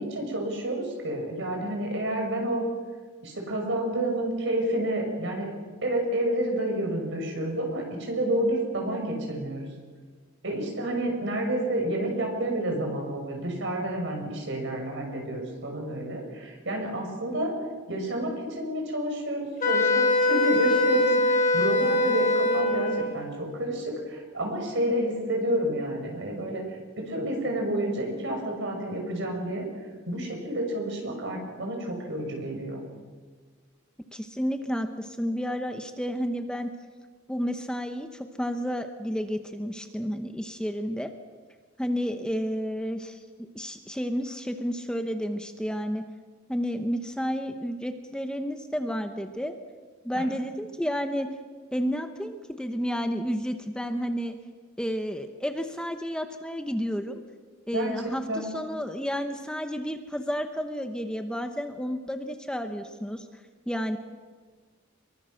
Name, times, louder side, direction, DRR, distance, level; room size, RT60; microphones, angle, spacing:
voice 1, 0.0-2.6 3.2-5.5 5.8-9.7 10.4-17.5 17.9-26.6 27.0-29.7 30.1-32.8 50.1-50.2 57.7-57.9 58.3-58.5, right 1 dB, 65° right, 2 dB, 6.3 m, -29 dB
Wind instrument woodwind instrument, 19.6-23.1, left 2 dB, 40° left, 3.1 m, -23 dB
voice 2, 34.1-36.7 37.3-41.1 41.8-46.0 46.5-49.5 50.0-51.3 51.7-54.4 54.8-57.2 57.7-63.2 63.7-64.0, equal, 5° left, 6 dB, 1.1 m, -31 dB
25.0 x 23.0 x 6.5 m, 1.5 s
head